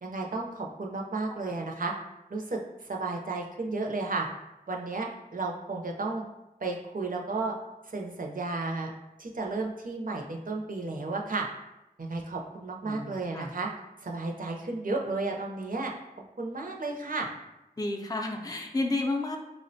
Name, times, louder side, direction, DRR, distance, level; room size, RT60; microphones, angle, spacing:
voice 1, 0.0-1.9 2.3-4.3 4.7-6.2 6.6-7.5 7.8-8.9 9.2-11.5 12.0-13.7 14.0-15.9 16.4-17.3, right 3 dB, 60° right, 0 dB, 0.5 m, -33 dB
voice 2, 12.8-13.5 17.8-19.4, left 2 dB, 25° left, 2 dB, 0.4 m, -31 dB
4.7 x 2.1 x 2.6 m, 0.94 s
wide cardioid pair, 50°, 16 cm